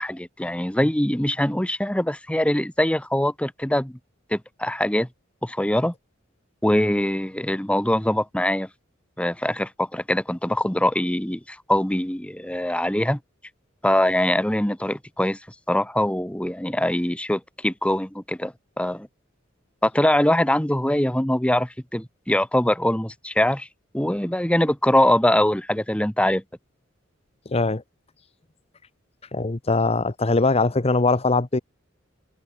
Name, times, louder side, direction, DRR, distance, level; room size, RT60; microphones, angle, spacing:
voice 1, 0.0-4.0 4.3-5.1 5.4-5.9 6.6-8.7 9.2-13.2 13.8-15.4 15.7-19.1 19.8-23.7 23.9-26.4, left 1 dB, 5° left, 1.4 m, -23 dB
voice 2, 27.5-27.8 29.3-31.6, left 3 dB, 30° left, 0.9 m, -21 dB
head